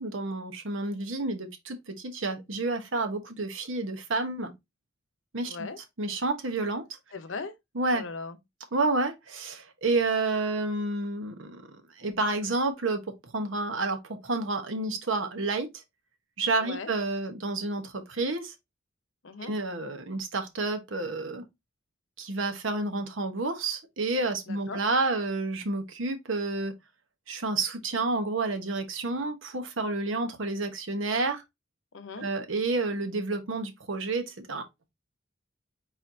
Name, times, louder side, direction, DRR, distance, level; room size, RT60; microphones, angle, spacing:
voice 1, 0.0-4.5 5.3-5.7 6.0-6.8 7.8-8.0 8.7-11.6 12.0-13.0 13.3-15.8 16.4-18.5 19.5-21.4 22.2-26.7 27.3-31.4 32.2-34.6, right 3 dB, 85° right, 1.0 m, -30 dB
voice 2, 5.4-5.8 7.1-7.5 7.9-8.4 16.6-16.9 19.2-19.5 24.5-24.8 31.9-32.3, left 4 dB, 80° left, 0.8 m, -38 dB
4.5 x 4.1 x 2.6 m
head